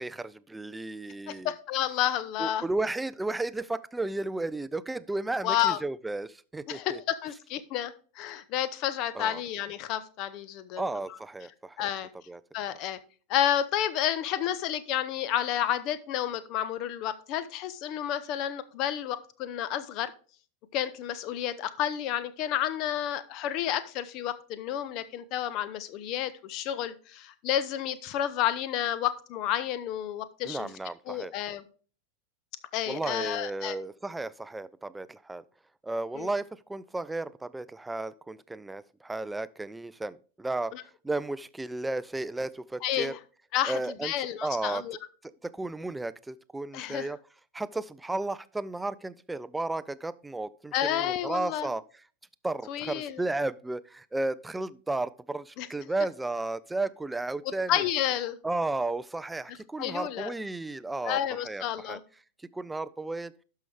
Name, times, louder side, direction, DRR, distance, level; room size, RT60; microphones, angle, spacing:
voice 1, 0.0-1.5 2.4-7.0 9.1-9.4 10.8-11.9 12.3-12.4 12.7-12.8 30.4-31.3 32.9-35.4 35.8-40.8 41.0-43.2 43.6-44.1 44.4-44.8 45.2-47.2 47.5-51.8 52.4-57.9 58.4-61.2 61.4-62.0 62.5-63.3, right 2 dB, 5° right, 17 dB, 0.4 m, -33 dB
voice 2, 1.3-2.6 5.4-5.8 6.7-10.8 11.8-12.1 12.5-13.0 13.3-20.1 20.7-30.7 31.1-31.6 32.7-33.8 36.2-36.3 40.7-40.8 42.8-43.2 43.5-45.0 46.7-47.1 50.7-51.7 52.7-53.2 55.6-55.7 57.7-58.4 59.8-60.3 61.0-62.0, left 11 dB, 40° left, 15 dB, 0.7 m, -30 dB
12.0 x 5.7 x 3.3 m, 0.40 s
figure-of-eight pair, 90°, 0 cm